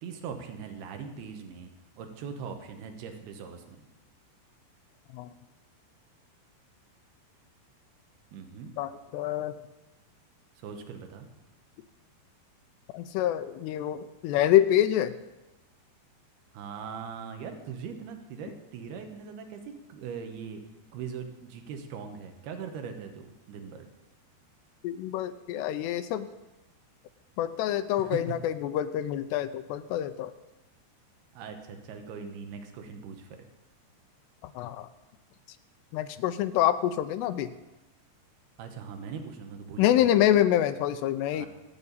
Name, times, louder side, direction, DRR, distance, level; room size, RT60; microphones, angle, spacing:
voice 1, 0.0-1.7 2.0-3.8 8.3-8.7 10.6-11.3 16.5-20.6 20.9-23.9 28.0-28.4 31.3-33.5 38.6-40.1 41.3-41.5, right 6 dB, 75° right, 6 dB, 3.1 m, -40 dB
voice 2, 8.8-9.5 12.9-15.1 24.8-26.3 27.4-30.3 34.4-34.9 35.9-37.5 39.8-41.5, left 12 dB, 90° left, 9 dB, 2.8 m, -26 dB
25.0 x 8.9 x 4.1 m, 1.0 s
omnidirectional pair, 4.8 m